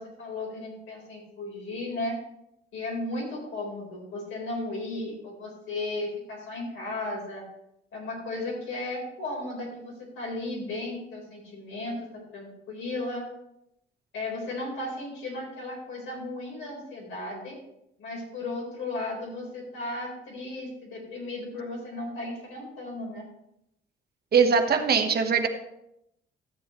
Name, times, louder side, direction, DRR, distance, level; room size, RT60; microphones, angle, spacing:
voice 1, 0.0-2.2 2.7-7.5 7.9-13.2 14.1-17.6 18.0-23.2, left 2 dB, 85° left, -2 dB, 4.3 m, -35 dB
voice 2, 24.3-25.5, right 6 dB, 50° right, 5 dB, 1.3 m, -21 dB
12.5 x 7.9 x 3.2 m, 0.80 s
cardioid pair, 90°, 20 cm